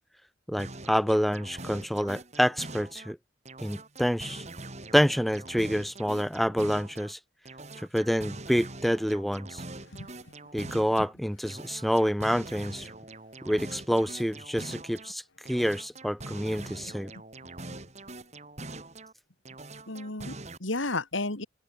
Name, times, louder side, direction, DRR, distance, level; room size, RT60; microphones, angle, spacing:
voice 1, 0.5-3.2 3.6-4.4 4.9-7.2 7.9-9.6 10.5-12.9 13.4-15.2 15.5-17.1, equal, ahead, 1.0 m, -27 dB
sound 1, 0.6-3.1 3.5-7.1 7.5-11.1 11.5-15.1 15.5-19.1 19.5-20.6, right 2 dB, 35° right, 3.3 m, -43 dB
voice 2, 19.9-21.5, left 2 dB, 85° left, 3.2 m, -33 dB
open air
head